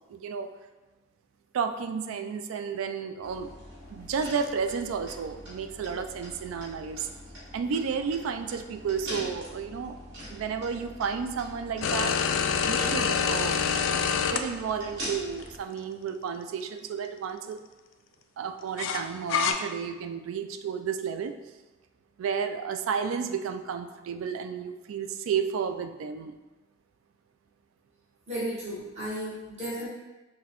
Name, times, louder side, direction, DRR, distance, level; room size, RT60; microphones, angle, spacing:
voice 1, 0.1-0.5 1.5-3.5 3.9-7.1 7.5-10.0 10.3-13.6 14.1-17.6 18.4-21.3 22.2-26.4, right 6 dB, 80° right, 8 dB, 0.3 m, -32 dB
sound 1, 3.2-15.6, equal, 60° right, 1.4 m, -43 dB
sound 2, 11.8-14.4 15.4-15.5 18.8-19.5, left 6 dB, 70° left, 0.3 m, -26 dB
voice 2, 28.3-29.9, equal, 35° right, -9 dB, 1.3 m, -34 dB
5.8 x 2.1 x 2.9 m, 1.2 s
head